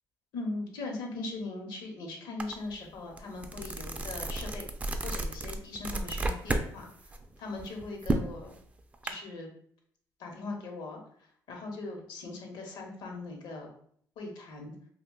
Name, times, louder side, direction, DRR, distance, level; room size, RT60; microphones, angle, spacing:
voice 1, 0.3-4.7 5.0-6.9 7.4-8.6 9.0-9.5 10.2-11.0 11.5-13.7 14.2-14.7, left 2 dB, 70° left, 2 dB, 0.9 m, -39 dB
sound 1, 2.4-2.5 2.9-6.7 7.0-9.1, right 2 dB, 20° right, 0.4 m, -32 dB
2.5 x 2.2 x 3.7 m, 0.62 s
supercardioid pair, 85°, 8 cm